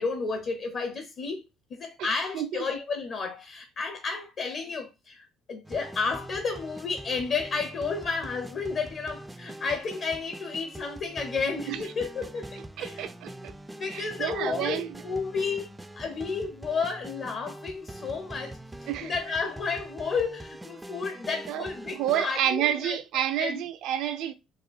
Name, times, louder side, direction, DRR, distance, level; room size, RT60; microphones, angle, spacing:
voice 1, 0.0-1.4 1.7-13.0 13.8-15.7 16.0-23.0 23.4-23.6, left 4 dB, 55° left, 0.7 m, -32 dB
voice 2, 2.3-2.7 11.7-11.8 12.8-13.5 13.9-14.9 18.9-19.1 21.5-24.3, right 11 dB, 75° right, 0.5 m, -29 dB
sound 1, 5.6-22.3, right 1 dB, 10° right, 0.3 m, -43 dB
4.2 x 2.3 x 2.5 m
cardioid pair, 100°, 0 cm